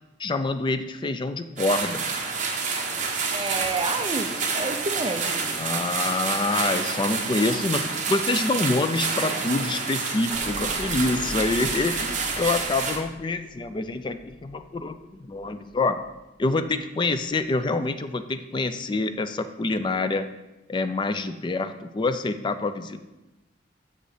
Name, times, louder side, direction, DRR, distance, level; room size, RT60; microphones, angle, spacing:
voice 1, 0.2-2.1 5.5-16.1 16.4-20.3 20.7-23.0, left 3 dB, 25° left, 10 dB, 0.4 m, -26 dB
sound 1, 1.6-13.0, right 5 dB, 45° right, 0.9 m, -28 dB
voice 2, 3.3-5.4, right 3 dB, 30° right, 7 dB, 0.5 m, -29 dB
sound 2, 10.3-16.6 17.0-17.2, equal, 10° left, 1.6 m, -43 dB
6.7 x 5.1 x 4.9 m, 1.0 s
head